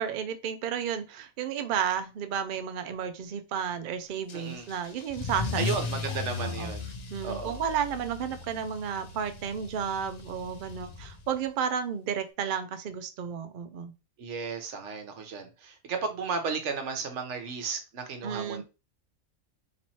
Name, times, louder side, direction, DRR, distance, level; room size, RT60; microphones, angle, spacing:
voice 1, 0.0-5.6 5.9-6.1 6.4-6.7 7.1-13.9 18.2-18.6, right 8 dB, 75° right, 0.4 m, -32 dB
Car / Engine starting / Accelerating revving vroom, 4.3-11.5, left 5 dB, 85° left, 0.3 m, -37 dB
voice 2, 4.3-4.7 5.5-6.9 7.2-7.6 14.2-18.6, right 5 dB, 60° right, 1.1 m, -34 dB
3.0 x 3.0 x 4.1 m
omnidirectional pair, 1.5 m